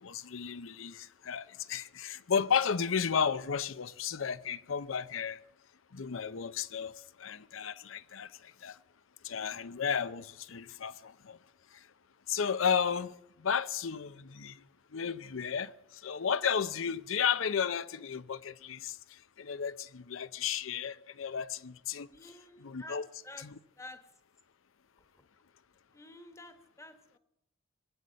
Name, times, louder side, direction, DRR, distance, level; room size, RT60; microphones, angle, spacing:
voice 1, 0.0-5.4 5.9-8.8 9.2-11.4 11.7-11.9 12.3-14.6 14.9-22.1 22.6-23.1 23.4-23.5, left 7 dB, 80° left, 0.6 m, -33 dB
voice 2, 22.1-23.5 23.8-24.0 25.9-27.2, left 1 dB, 15° left, 1.2 m, -50 dB
21.0 x 8.4 x 7.6 m
head